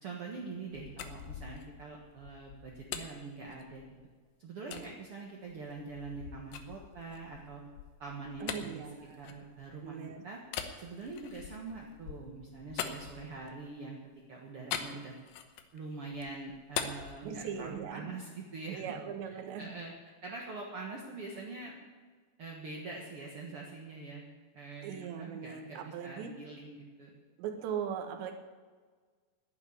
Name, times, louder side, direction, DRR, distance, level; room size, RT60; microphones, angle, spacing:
voice 1, 0.0-3.8 4.4-7.6 8.0-8.8 9.2-10.0 10.2-10.4 10.8-14.0 14.3-15.2 15.7-19.0 19.3-19.9 20.2-21.7 22.4-24.3 24.5-27.1, right 3 dB, 60° right, -1 dB, 1.5 m, -44 dB
sound 1, 0.6-4.1 4.7-4.9 5.5-9.9 10.5-13.7 14.7-15.8 16.1-17.9, left 8 dB, 70° left, 2.3 m, -43 dB
voice 2, 8.4-9.3 9.8-10.2 17.2-18.1 18.7-19.7 24.8-26.3 27.4-28.3, right 8 dB, 85° right, 5 dB, 3.7 m, -40 dB
10.5 x 10.5 x 9.8 m, 1.5 s
omnidirectional pair, 5.0 m